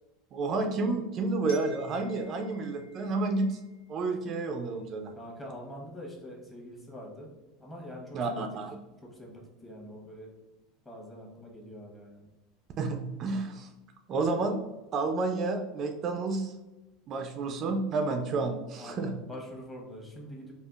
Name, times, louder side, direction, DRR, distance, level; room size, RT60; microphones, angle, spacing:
voice 1, 0.3-3.6 3.9-5.1 8.1-8.8 12.8-13.7 14.1-14.6 14.9-16.5 17.1-19.1, right 3 dB, 45° right, 5 dB, 0.3 m, -30 dB
Glockenspiel, 1.5-4.3, equal, 80° left, 1.0 m, -55 dB
voice 2, 5.2-7.3 7.6-8.5 9.0-10.3 10.8-12.3 18.8-20.5, equal, 15° left, -2 dB, 1.0 m, -44 dB
3.4 x 2.3 x 2.3 m, 1.1 s
supercardioid pair, 110°, 0 cm